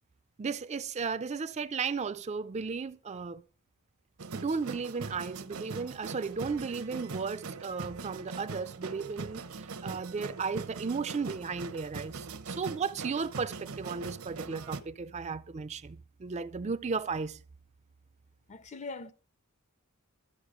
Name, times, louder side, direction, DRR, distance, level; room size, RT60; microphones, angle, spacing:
voice 1, 0.4-3.4 4.3-17.4, right 5 dB, 30° right, 0.4 m, -35 dB
sound 1, 4.2-14.8, right 4 dB, 70° right, 0.8 m, -41 dB
voice 2, 18.5-19.1, left 3 dB, 30° left, 0.6 m, -41 dB
13.0 x 6.5 x 4.9 m
head